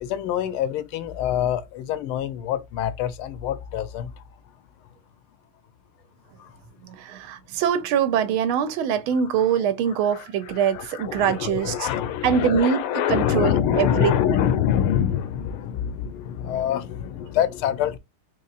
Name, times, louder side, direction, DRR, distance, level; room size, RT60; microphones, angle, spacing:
voice 1, 0.0-4.2 6.4-6.6 10.1-18.0, left 10 dB, 85° left, 1.5 m, -25 dB
voice 2, 6.8-11.9 12.2-14.2, right 8 dB, 80° right, 1.4 m, -23 dB
4.2 x 3.0 x 2.4 m
omnidirectional pair, 2.3 m